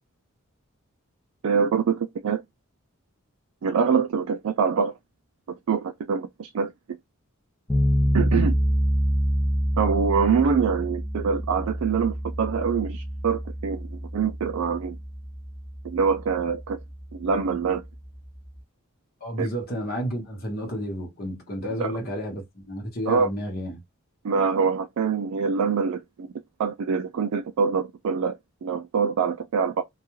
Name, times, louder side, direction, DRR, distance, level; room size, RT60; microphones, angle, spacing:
voice 1, 1.4-2.4 3.6-4.9 5.7-6.7 8.1-8.5 9.8-15.0 15.8-16.8 17.1-17.8 19.4-19.5 21.8-21.9 23.1-23.3 24.2-26.3 26.6-29.8, right 6 dB, 80° right, 0.4 m, -24 dB
sound 1, 7.7-18.6, equal, 10° left, 0.4 m, -27 dB
voice 2, 19.2-23.8, equal, 45° left, 1.0 m, -31 dB
2.3 x 2.3 x 3.0 m
head